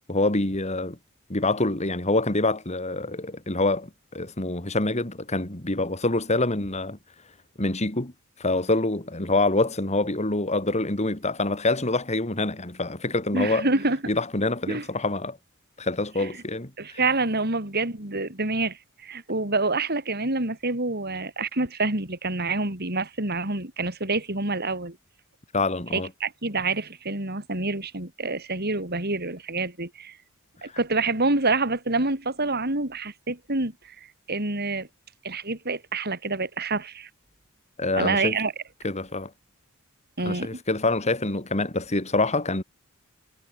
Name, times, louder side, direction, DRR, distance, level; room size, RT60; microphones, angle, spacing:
voice 1, 0.1-1.0 1.3-7.0 7.6-8.1 8.4-13.7 14.1-15.4 15.8-16.7 25.5-26.1 37.8-38.3 38.8-39.3 40.3-42.6, left 2 dB, 30° left, 2.9 m, -26 dB
voice 2, 13.3-14.0 14.7-14.9 16.2-16.3 16.8-25.0 25.9-30.2 30.6-34.9 35.2-37.1 37.9-38.5 40.2-40.5, right 3 dB, 50° right, 5.1 m, -27 dB
head